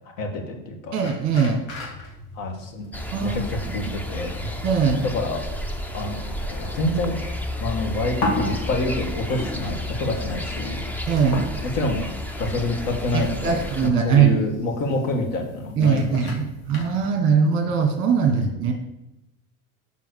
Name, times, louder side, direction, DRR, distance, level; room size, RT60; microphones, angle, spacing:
voice 1, 0.2-1.0 2.3-2.9 3.2-4.4 5.1-5.4 5.9-6.2 6.7-7.2 7.6-10.8 11.7-12.0 12.4-16.3 18.3-18.5, left 2 dB, 60° left, 3 dB, 1.6 m, -27 dB
voice 2, 0.9-1.6 3.1-3.4 3.8-3.9 4.6-5.0 11.1-11.4 13.1-14.4 15.8-18.7, right 6 dB, 30° right, 3 dB, 1.1 m, -21 dB
sound 1, 1.0-17.1, left 1 dB, 80° left, 2.0 m, -36 dB
sound 2, 2.9-13.9, left 1 dB, 5° left, 0.3 m, -32 dB
5.6 x 4.6 x 6.3 m, 0.91 s
supercardioid pair, 135°, 38 cm